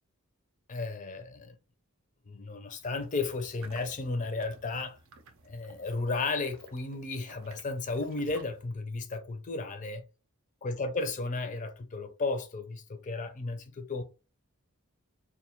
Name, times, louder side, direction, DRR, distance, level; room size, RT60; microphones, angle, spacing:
voice 1, 0.7-1.6 2.3-5.0 5.4-10.0 10.6-14.0, left 3 dB, 35° left, 0.4 m, -34 dB
sound 1, 2.8-8.7, right 3 dB, 65° right, 0.5 m, -55 dB
2.2 x 2.2 x 2.8 m
head